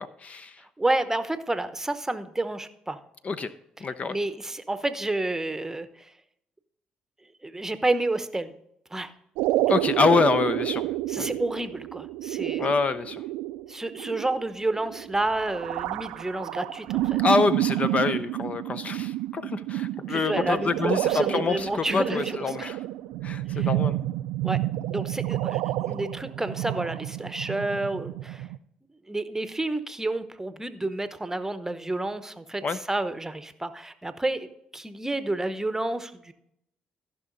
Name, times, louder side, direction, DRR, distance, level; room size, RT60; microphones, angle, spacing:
voice 1, 0.0-0.6 3.2-3.5 3.8-4.2 9.7-10.9 11.2-11.4 12.6-13.2 17.2-22.8 23.2-24.0 32.6-32.8, left 4 dB, 40° left, 13 dB, 0.6 m, -26 dB
voice 2, 0.8-3.0 4.1-6.1 7.4-8.5 8.9-9.1 9.7-9.8 11.1-12.7 13.7-17.2 20.1-22.7 23.5-23.7 24.4-24.6 24.9-28.5 29.1-32.6 32.9-36.3, right 2 dB, 15° right, 11 dB, 0.9 m, -30 dB
sound 1, 9.4-28.6, right 15 dB, 75° right, 0.3 m, -29 dB
14.5 x 5.7 x 4.0 m, 0.77 s
hypercardioid pair, 50°, 3 cm